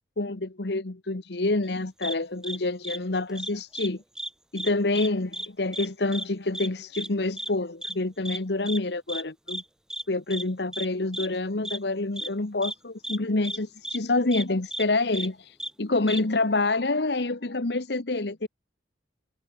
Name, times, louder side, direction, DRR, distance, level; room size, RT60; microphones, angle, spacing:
voice 1, 0.2-4.0 4.5-9.6 10.1-18.5, left 2 dB, 60° left, 1.2 m, -27 dB
sound 1, 2.0-2.1 2.4-2.6 2.8-3.0 3.3-3.9 4.1-4.3 4.5-5.1 5.3-5.5 5.7-5.9 6.1-6.2 6.5-6.7 6.9-7.1 7.4-7.5 7.8-7.9 8.2-8.4 8.7-8.8 9.1-9.2 9.5-9.6 9.9-10.0 10.3-10.4 10.7-10.9 11.1-11.3 11.6-11.8 12.2-12.3 12.6-12.7 13.0-13.2 13.4-13.6 13.8-14.0 14.3-14.4 14.7-14.8 15.1-15.3 15.6-15.7 16.1-16.2, right 1 dB, 5° right, 0.4 m, -33 dB
head